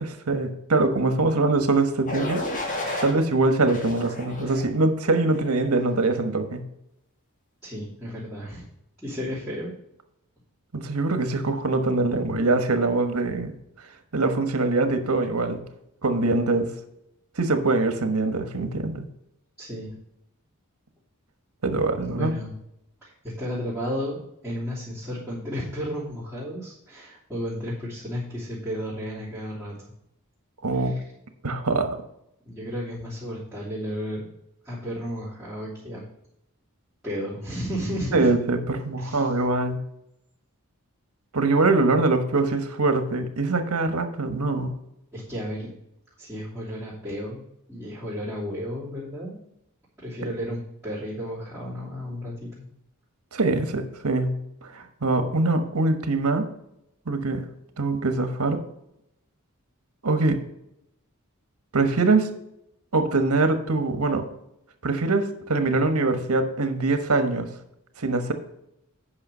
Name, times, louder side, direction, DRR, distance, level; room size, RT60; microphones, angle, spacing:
voice 1, 0.0-2.4 3.0-6.6 10.7-13.5 14.1-15.6 16.0-16.7 17.4-19.0 21.6-22.3 30.6-31.0 31.4-32.0 38.1-39.8 41.3-44.7 53.3-54.3 54.6-56.5 57.1-57.4 57.8-58.6 60.0-60.4 61.7-62.3 62.9-64.3 64.8-67.5 68.0-68.3, right 3 dB, 85° right, 8 dB, 1.3 m, -23 dB
sound 1, 2.1-3.1 3.7-4.7 5.3-5.7, left 1 dB, 35° left, 1.8 m, -32 dB
voice 2, 7.6-8.7 9.0-9.7 19.6-20.0 22.1-22.5 23.0-24.2 24.4-29.8 30.7-31.0 32.4-34.3 34.6-36.0 37.0-38.3 39.0-39.3 45.1-45.7 46.2-47.4 47.7-49.4 50.0-52.7, equal, 5° right, -12 dB, 3.1 m, -33 dB
8.8 x 5.8 x 5.5 m, 0.81 s
head